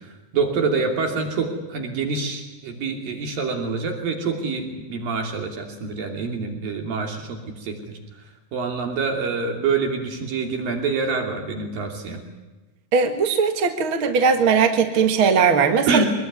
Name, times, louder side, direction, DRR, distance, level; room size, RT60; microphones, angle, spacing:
voice 1, 0.3-7.8 8.5-12.2 15.9-16.1, right 4 dB, 75° right, 3 dB, 4.6 m, -26 dB
voice 2, 12.9-16.0, right 5 dB, 45° right, 6 dB, 2.0 m, -19 dB
24.0 x 21.0 x 9.6 m, 1.2 s
omnidirectional pair, 4.1 m